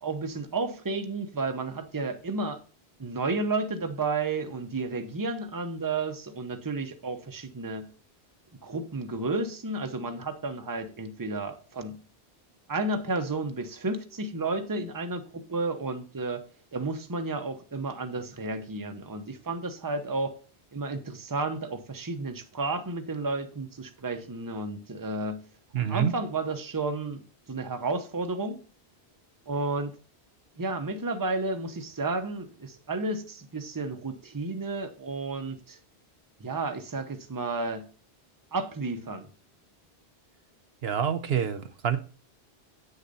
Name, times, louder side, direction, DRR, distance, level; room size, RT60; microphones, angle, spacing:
voice 1, 0.0-2.6 3.0-7.9 8.6-12.0 12.7-16.4 16.7-20.3 20.7-25.4 25.8-27.2 27.5-28.6 29.5-29.9 30.6-35.8 36.4-37.9 38.5-39.3, right 3 dB, 20° right, 0.8 m, -32 dB
voice 2, 25.7-26.1 40.8-42.0, right 8 dB, 70° right, 1.0 m, -27 dB
9.1 x 6.6 x 4.1 m
omnidirectional pair, 1.1 m